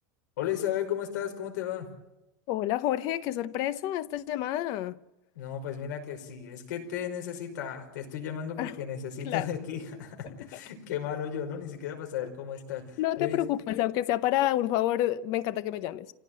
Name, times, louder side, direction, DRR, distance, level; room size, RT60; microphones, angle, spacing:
voice 1, 0.4-1.9 5.4-13.4, left 9 dB, 85° left, 5.4 m, -34 dB
voice 2, 2.5-5.0 8.6-8.8 9.2-9.5 10.2-10.6 12.2-12.3 13.0-16.1, left 13 dB, 40° left, 0.8 m, -29 dB
26.0 x 17.0 x 9.0 m
supercardioid pair, 175°, 10 cm